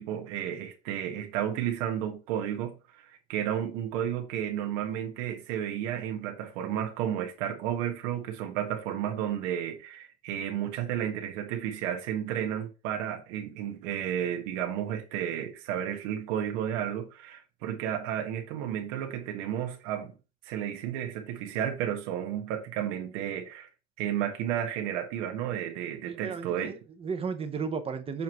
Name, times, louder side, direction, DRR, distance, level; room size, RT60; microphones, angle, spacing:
voice 1, 0.0-20.2 20.4-23.7 24.0-26.8, right 10 dB, 80° right, 1.4 m, -32 dB
voice 2, 26.1-28.2, right 5 dB, 15° right, 0.6 m, -34 dB
7.1 x 3.1 x 5.4 m
cardioid pair, 160°, 35 cm